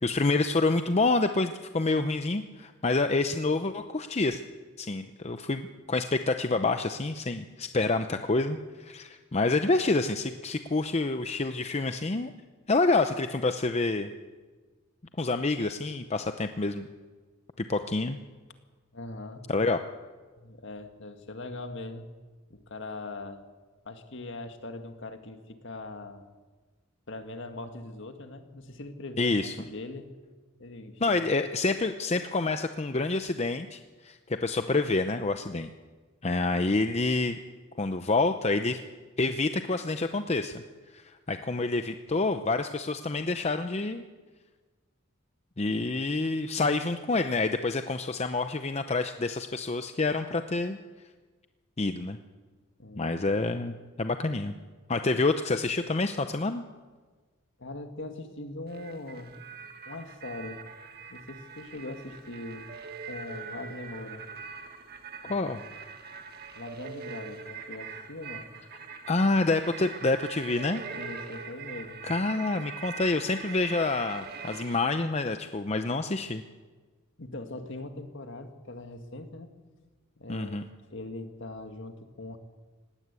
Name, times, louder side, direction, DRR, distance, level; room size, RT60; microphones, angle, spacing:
voice 1, 0.0-4.4 4.8-12.3 12.7-14.1 15.2-16.9 17.6-18.2 19.5-19.8 29.2-29.5 31.0-35.7 36.2-37.4 37.8-38.8 39.2-40.6 40.9-44.0 45.6-50.8 51.8-52.2 53.0-54.5 54.9-56.6 65.3-65.6 69.1-70.8 72.0-76.4 80.3-80.6, left 3 dB, 30° left, 8 dB, 0.7 m, -27 dB
voice 2, 18.9-19.5 20.4-22.1 22.5-23.4 23.9-26.3 27.1-29.3 29.6-30.2 30.6-31.0 52.8-53.1 55.1-55.2 57.6-59.3 59.9-60.6 61.1-62.8 63.1-64.3 65.2-65.7 66.5-68.5 70.9-72.0 77.2-79.5 80.2-80.6 80.9-82.4, left 2 dB, 60° left, 6 dB, 1.9 m, -41 dB
sound 1, 58.7-74.8, right 5 dB, 50° right, 1.8 m, -42 dB
19.0 x 17.5 x 8.3 m, 1.4 s
head